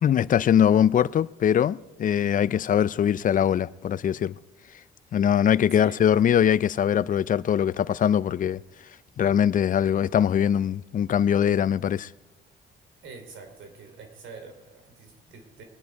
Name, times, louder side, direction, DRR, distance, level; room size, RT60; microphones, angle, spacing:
voice 1, 0.0-4.3 5.1-8.6 9.2-12.1, left 9 dB, 45° left, 0.4 m, -22 dB
voice 2, 5.7-6.3 13.0-15.6, right 4 dB, 80° right, 3.3 m, -45 dB
21.0 x 9.5 x 4.6 m
cardioid pair, 90°, 20 cm